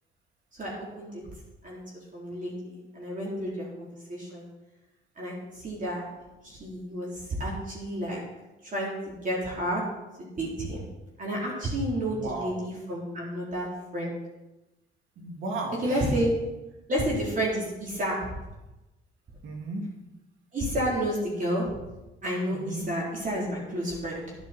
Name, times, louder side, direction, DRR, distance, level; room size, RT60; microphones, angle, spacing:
voice 1, 0.5-1.3 1.6-4.5 5.2-6.1 6.4-8.2 8.6-9.8 10.2-10.8 11.2-14.1 15.8-16.3 16.9-18.4 20.5-21.8 22.2-24.4, equal, 40° right, -4 dB, 4.0 m, -31 dB
voice 2, 12.1-12.6 15.2-16.1 19.4-19.9 22.5-22.9, right 2 dB, 80° right, 1 dB, 2.6 m, -35 dB
11.0 x 10.5 x 4.5 m, 1.0 s
cardioid pair, 90°, 20 cm